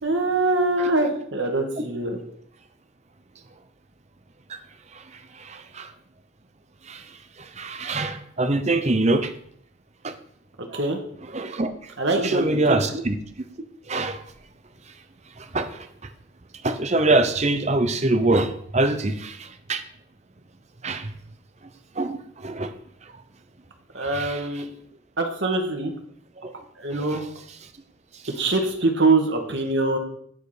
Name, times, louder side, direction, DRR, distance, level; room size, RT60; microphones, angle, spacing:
voice 1, 0.0-2.2 10.6-11.0 12.0-12.8 23.9-24.6 25.2-25.9 26.8-27.2 28.4-30.0, right 2 dB, 60° right, 2 dB, 1.8 m, -23 dB
voice 2, 5.3-5.9 6.9-7.0 7.4-9.3 10.0-10.1 10.7-10.8 11.3-13.2 13.9-14.2 15.4-15.9 16.6-19.8 20.8-21.1 22.0-22.7 24.0-24.6 26.4-26.5 26.9-27.6, right 2 dB, 35° right, 8 dB, 0.8 m, -25 dB
9.5 x 6.6 x 5.0 m, 0.65 s
head